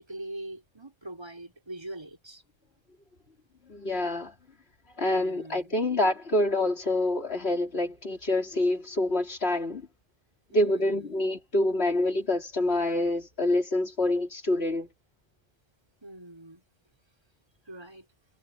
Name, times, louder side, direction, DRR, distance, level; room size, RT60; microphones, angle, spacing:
voice 1, 0.0-2.4 5.1-5.7 10.5-11.2 16.0-16.6 17.7-18.1, right 1 dB, 25° right, 4.6 m, -42 dB
voice 2, 3.7-4.3 5.0-9.9 10.5-14.9, left 1 dB, 90° left, 3.6 m, -26 dB
omnidirectional pair, 1.0 m